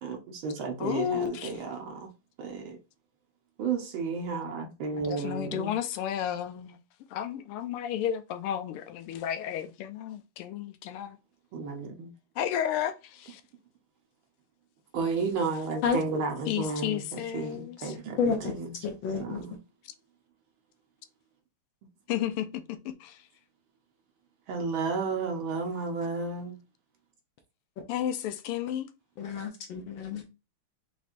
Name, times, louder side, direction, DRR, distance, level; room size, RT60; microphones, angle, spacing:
voice 1, 0.0-2.1 2.4-2.8 3.6-5.7 11.5-12.1 14.9-18.7 19.2-19.6 24.5-26.6, right 4 dB, 70° right, 1.7 m, -32 dB
voice 2, 0.8-1.6 5.0-6.8 7.1-11.2 12.4-13.4 16.5-17.9 22.1-23.2 27.9-28.9, left 10 dB, 90° left, 1.5 m, -32 dB
voice 3, 18.2-18.6 18.8-19.4 29.2-30.2, left 5 dB, 70° left, 1.4 m, -29 dB
5.2 x 3.3 x 2.5 m
omnidirectional pair, 2.4 m